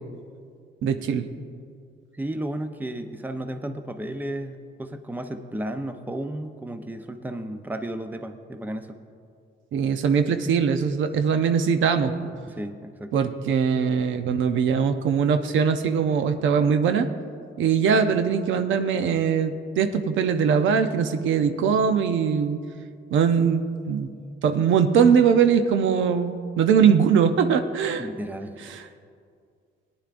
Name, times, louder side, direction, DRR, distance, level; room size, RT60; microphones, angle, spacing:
voice 1, 0.8-1.3 9.7-12.3 13.1-17.1 17.6-22.6 23.1-24.1 24.4-28.1 28.7-28.8, right 6 dB, 75° right, 8 dB, 0.6 m, -21 dB
voice 2, 2.1-9.0 12.5-13.1 28.0-28.5, right 1 dB, 10° right, 7 dB, 0.6 m, -33 dB
18.0 x 10.0 x 2.5 m, 2.3 s
cardioid pair, 90°, 20 cm